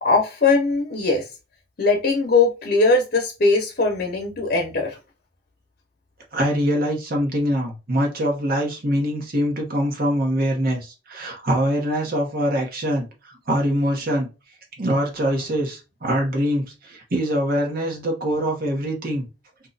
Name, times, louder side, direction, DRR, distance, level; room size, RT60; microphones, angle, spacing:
voice 1, 0.0-1.3 1.8-5.0, left 3 dB, 55° left, 0.8 m, -20 dB
voice 2, 6.3-14.3 14.8-19.3, equal, 55° right, 1.0 m, -23 dB
2.7 x 2.3 x 3.9 m
head